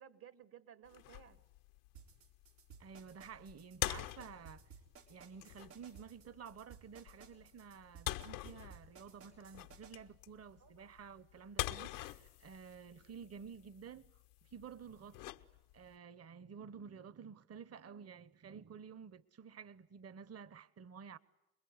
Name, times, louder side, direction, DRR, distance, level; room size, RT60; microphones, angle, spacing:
voice 1, 0.0-1.4 10.6-10.9 17.5-18.2, right 9 dB, 60° right, 1.9 m, -59 dB
sound 1, 0.9-16.0, left 16 dB, 85° left, 1.0 m, -46 dB
sound 2, 1.9-9.9, right 7 dB, 85° right, 4.0 m, -58 dB
voice 2, 2.8-4.7 5.1-14.1 14.5-15.3 15.7-21.2, right 6 dB, 35° right, 1.0 m, -52 dB
27.5 x 21.0 x 9.7 m
hypercardioid pair, 65°, 42 cm